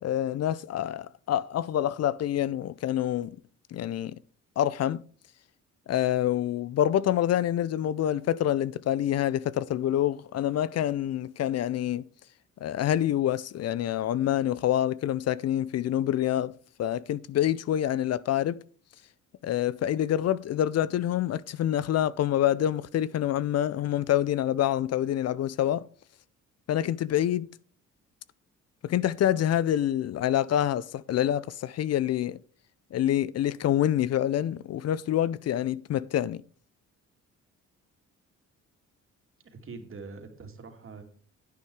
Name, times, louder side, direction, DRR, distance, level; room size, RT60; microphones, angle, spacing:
voice 1, 0.0-3.4 3.7-4.2 4.6-5.0 5.9-12.0 12.6-16.5 16.8-18.6 19.4-25.8 26.7-27.5 28.8-32.4 32.9-36.4, left 11 dB, 55° left, 0.5 m, -26 dB
voice 2, 39.4-41.0, right 4 dB, 45° right, 2.5 m, -44 dB
10.0 x 8.6 x 4.7 m
cardioid pair, 90°, 30 cm